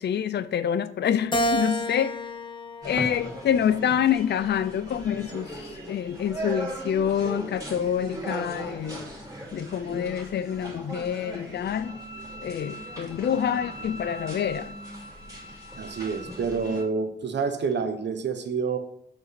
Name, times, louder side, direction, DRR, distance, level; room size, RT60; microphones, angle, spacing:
voice 1, 0.0-2.2 2.8-9.1 9.5-12.0 12.4-14.7, left 8 dB, 60° left, 0.5 m, -27 dB
Keyboard (musical), 1.3-3.8 4.4-5.6, equal, 25° left, 0.8 m, -31 dB
sound 1, 2.8-16.8, right 1 dB, 15° right, 2.7 m, -39 dB
Bowed string instrument, 11.8-16.8, equal, 75° left, 2.2 m, -44 dB
voice 2, 15.8-18.8, right 5 dB, 60° right, 1.1 m, -28 dB
7.3 x 5.6 x 5.9 m
wide cardioid pair, 105°, 20 cm